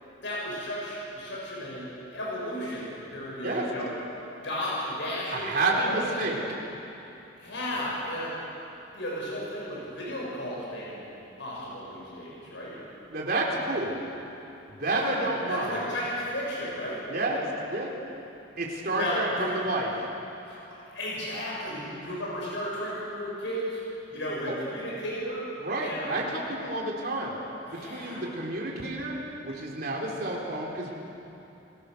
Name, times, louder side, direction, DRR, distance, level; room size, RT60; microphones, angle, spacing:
voice 1, 0.2-3.9 4.4-6.3 7.4-8.3 8.9-11.1 11.4-12.8 14.8-17.4 19.0-19.5 20.4-23.8 24.1-25.5 25.8-26.2 26.5-26.7 27.7-28.3, equal, 65° left, -6 dB, 7.4 m, -34 dB
voice 2, 5.3-6.4 13.1-13.9 14.8-15.8 17.1-17.4 17.7-17.9 18.6-20.1 24.4-24.5 25.6-27.4 27.8-29.2 29.4-30.9, right 2 dB, 50° right, -2 dB, 3.9 m, -29 dB
29.5 x 19.0 x 6.9 m, 3.0 s
head